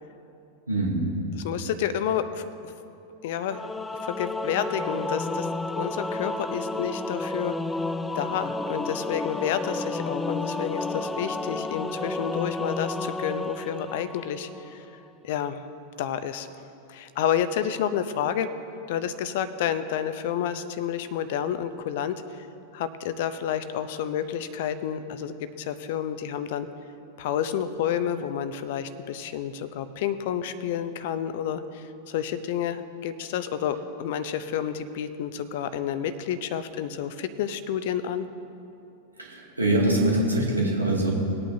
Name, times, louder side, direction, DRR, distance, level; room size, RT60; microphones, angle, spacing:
voice 1, 0.7-1.1 39.2-41.1, right 1 dB, 85° right, -3 dB, 2.1 m, -23 dB
voice 2, 1.4-2.4 3.2-3.6 4.0-5.5 5.7-7.5 8.1-14.9 15.2-15.6 16.0-16.5 16.9-18.5 18.9-22.5 22.7-26.7 27.2-38.3, left 9 dB, 50° left, 12 dB, 0.6 m, -30 dB
Singing / Musical instrument, 3.5-14.8, left 2 dB, 10° left, 0.4 m, -31 dB
20.5 x 8.8 x 2.7 m, 2.7 s
figure-of-eight pair, 90°, 0 cm